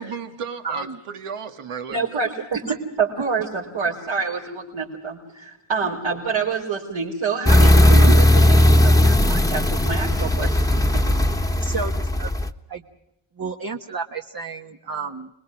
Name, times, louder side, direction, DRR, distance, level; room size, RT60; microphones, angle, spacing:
voice 1, 0.0-2.3, right 6 dB, 80° right, 7 dB, 2.1 m, -34 dB
voice 2, 0.6-1.0 2.7-2.8 8.1-8.2 11.6-12.3 12.7-12.8 13.4-15.3, right 4 dB, 45° right, 4 dB, 1.3 m, -31 dB
voice 3, 1.9-10.6 10.9-11.0, right 5 dB, 65° right, -4 dB, 4.5 m, -27 dB
sound 1, 7.5-12.5, left 1 dB, 5° left, 1.2 m, -16 dB
26.5 x 21.0 x 6.3 m, 0.85 s
cardioid pair, 95°, 50 cm